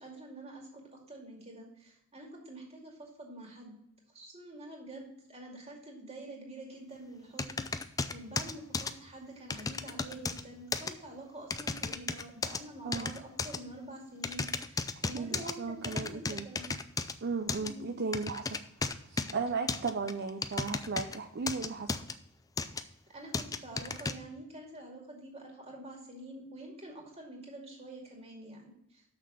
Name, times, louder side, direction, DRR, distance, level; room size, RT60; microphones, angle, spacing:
voice 1, 0.0-3.7 4.1-16.7 17.6-17.9 22.7-22.9 23.1-29.0, right 1 dB, 30° right, 0 dB, 2.3 m, -47 dB
sound 1, 7.4-8.9 9.5-10.4 10.7-10.9 11.5-12.6 12.9-13.6 14.2-15.5 15.8-17.1 17.5-17.7 18.1-19.3 19.7-21.2 21.5-22.1 22.6-22.8 23.3-24.1, left 4 dB, 15° left, 0.4 m, -34 dB
voice 2, 14.9-16.5 17.2-18.6 19.1-22.0, right 4 dB, 50° right, 5 dB, 0.6 m, -36 dB
6.6 x 6.2 x 5.4 m, 0.78 s
head